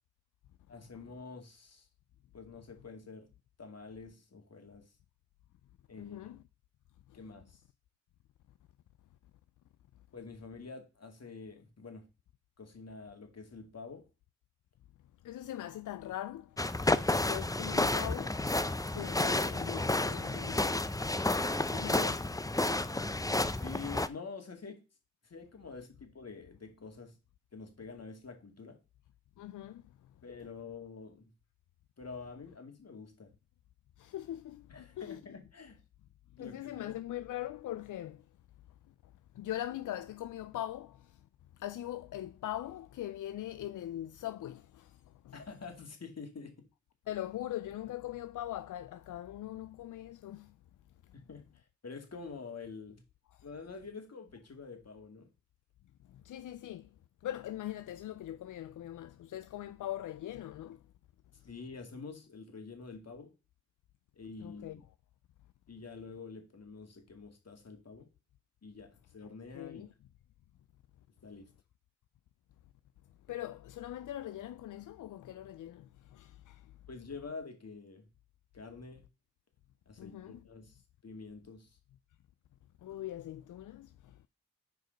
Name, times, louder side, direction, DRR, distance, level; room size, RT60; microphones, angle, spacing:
voice 1, 0.7-1.9 2.3-3.3 3.6-4.9 5.9-6.3 7.1-7.6 10.1-12.1 12.6-14.1 16.9-17.3 21.7-21.9 23.6-24.8 25.2-27.1 27.5-28.8 30.2-31.3 32.0-33.3 34.7-35.8 36.4-37.0 45.3-46.7 51.1-53.0 53.4-55.3 61.4-63.3 64.2-64.8 65.7-68.1 68.6-69.8 71.2-71.5 76.9-78.1 78.5-79.0 79.9-81.7, left 4 dB, 55° left, 2.4 m, -47 dB
voice 2, 6.0-6.4 7.1-7.2 15.2-20.9 21.7-22.2 29.4-29.8 34.0-35.2 36.4-38.2 39.4-41.2 41.6-45.0 45.2-45.4 47.1-50.5 56.1-56.9 57.2-60.8 64.4-64.8 69.5-69.9 73.3-76.7 80.0-80.4 82.8-84.3, left 13 dB, 85° left, 0.5 m, -41 dB
sound 1, 16.6-24.1, left 2 dB, 10° left, 0.6 m, -31 dB
6.6 x 4.8 x 5.1 m
cardioid pair, 45°, 30 cm